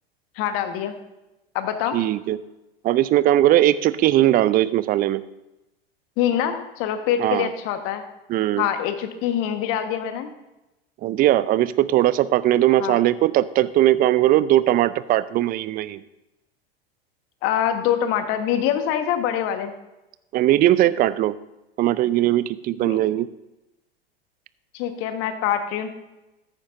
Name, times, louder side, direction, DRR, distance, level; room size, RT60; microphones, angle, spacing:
voice 1, 0.4-0.9 1.5-2.0 6.2-8.0 8.6-10.3 12.8-13.0 17.4-19.7 22.8-23.0 24.7-25.9, left 10 dB, 45° left, 8 dB, 1.4 m, -24 dB
voice 2, 1.9-2.4 2.8-5.2 7.2-7.5 8.3-8.7 11.0-16.0 20.3-21.3 21.8-23.3, right 14 dB, 30° right, 17 dB, 0.5 m, -19 dB
14.0 x 9.7 x 2.6 m, 0.96 s
hypercardioid pair, 90°, 30 cm